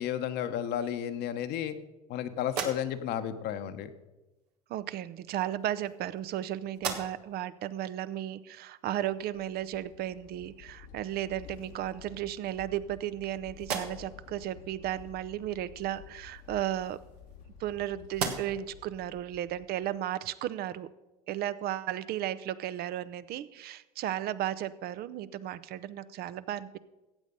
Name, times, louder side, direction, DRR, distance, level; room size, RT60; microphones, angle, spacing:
voice 1, 0.0-1.8 2.1-3.9, left 10 dB, 60° left, 9 dB, 1.1 m, -32 dB
sound 1, 2.4-3.3 4.4-4.6 5.5-6.4 6.7-7.4 7.9-8.0 10.7-10.8 11.2-11.9 12.5-13.2 13.6-14.3 16.3-17.7 18.1-18.8, right 5 dB, 90° right, 1.5 m, -39 dB
voice 2, 4.7-17.0 17.6-20.9 21.3-26.8, right 12 dB, 55° right, 16 dB, 0.7 m, -34 dB
sound 2, 9.1-20.1, left 9 dB, 80° left, 1.5 m, -52 dB
15.0 x 8.4 x 5.4 m, 1.1 s
hypercardioid pair, 75°, 20 cm